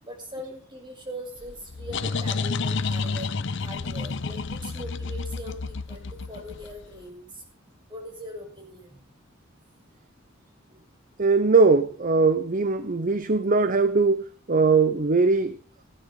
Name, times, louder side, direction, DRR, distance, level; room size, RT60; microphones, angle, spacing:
voice 1, 0.0-7.4 7.9-9.1, equal, 25° right, 6.6 m, -41 dB
sound 1, 1.4-6.9, left 4 dB, 65° left, 0.8 m, -30 dB
voice 2, 11.2-15.6, right 4 dB, 45° right, 0.8 m, -21 dB
17.0 x 10.5 x 5.4 m
head